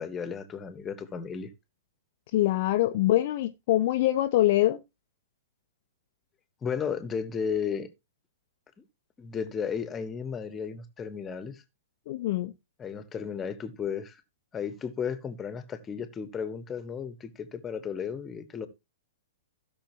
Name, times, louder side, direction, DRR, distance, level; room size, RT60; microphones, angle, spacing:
voice 1, 0.0-1.5 6.6-7.9 9.2-11.6 12.8-14.2 14.5-18.7, left 6 dB, 15° left, 1.4 m, -34 dB
voice 2, 2.3-4.8 12.1-12.5, left 15 dB, 45° left, 0.7 m, -24 dB
16.5 x 6.2 x 2.9 m
figure-of-eight pair, 110°, 0 cm